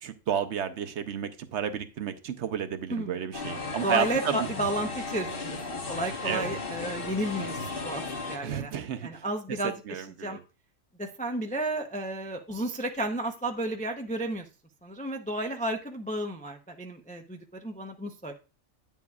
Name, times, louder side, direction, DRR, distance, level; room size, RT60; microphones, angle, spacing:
voice 1, 0.0-4.4 6.2-6.4 8.4-9.2 9.6-10.4, right 8 dB, 65° right, 9 dB, 0.9 m, -32 dB
sound 1, 3.3-8.4, left 3 dB, 45° left, 1.3 m, -35 dB
voice 2, 3.8-8.7 9.0-10.4 11.0-14.4 14.8-18.3, right 1 dB, 10° left, 4 dB, 0.4 m, -32 dB
9.4 x 7.2 x 2.3 m, 0.32 s
omnidirectional pair, 1.4 m